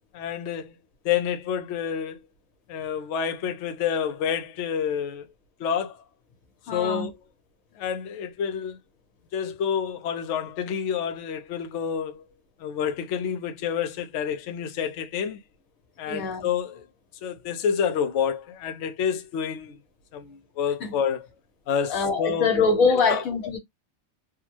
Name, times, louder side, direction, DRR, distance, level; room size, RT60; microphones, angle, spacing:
voice 1, 0.1-0.8 1.0-2.2 2.7-5.3 5.6-6.0 6.7-7.1 7.8-8.8 9.3-12.2 12.6-15.4 16.0-16.8 17.2-19.8 20.1-21.2 21.7-22.5 23.1-23.2, left 7 dB, 65° left, 0.9 m, -28 dB
voice 2, 6.7-7.1 16.1-16.5 20.8-20.9 21.9-23.6, left 4 dB, 90° left, 1.6 m, -23 dB
3.4 x 2.3 x 3.0 m
omnidirectional pair, 1.4 m